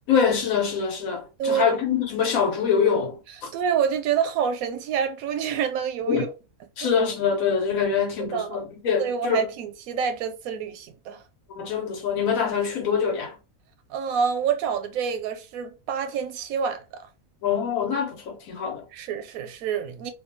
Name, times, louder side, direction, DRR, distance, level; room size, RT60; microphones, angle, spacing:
voice 1, 0.1-3.5 6.0-6.2 6.8-9.5 11.5-13.4 17.4-18.8, left 6 dB, 75° left, 1.3 m, -24 dB
voice 2, 1.4-1.8 3.5-6.3 8.2-8.6 9.0-11.2 13.9-17.0 18.9-20.1, right 7 dB, 85° right, 1.0 m, -27 dB
2.7 x 2.3 x 2.6 m
omnidirectional pair, 1.5 m